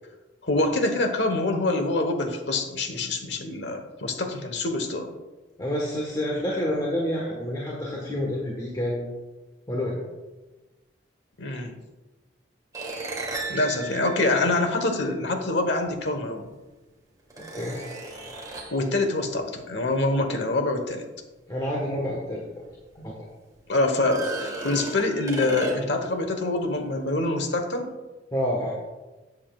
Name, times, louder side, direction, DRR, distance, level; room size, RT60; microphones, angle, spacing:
voice 1, 0.4-5.1 11.4-11.7 13.5-16.5 18.7-21.0 23.7-27.9, left 2 dB, 65° left, 6 dB, 1.3 m, -25 dB
voice 2, 5.6-9.0 9.7-10.0 17.5-17.8 21.5-22.4 22.9-23.1 28.3-28.7, left 1 dB, 20° left, -3 dB, 1.4 m, -28 dB
sound 1, 12.7-15.2 16.4-16.5 17.3-18.9 22.1-22.2 22.7-22.8 24.0-26.1, right 2 dB, 20° right, 1.8 m, -35 dB
12.5 x 8.5 x 2.4 m, 1.1 s
head